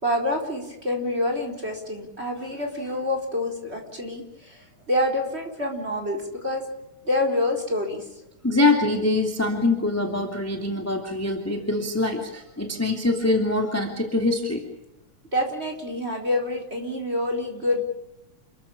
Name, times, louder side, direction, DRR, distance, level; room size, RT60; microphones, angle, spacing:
voice 1, 0.0-6.7 7.0-8.1 15.3-17.8, left 1 dB, 20° right, 3 dB, 4.6 m, -27 dB
voice 2, 8.4-14.6, left 2 dB, 5° left, 3 dB, 2.7 m, -24 dB
29.5 x 14.5 x 8.9 m, 0.90 s
omnidirectional pair, 3.3 m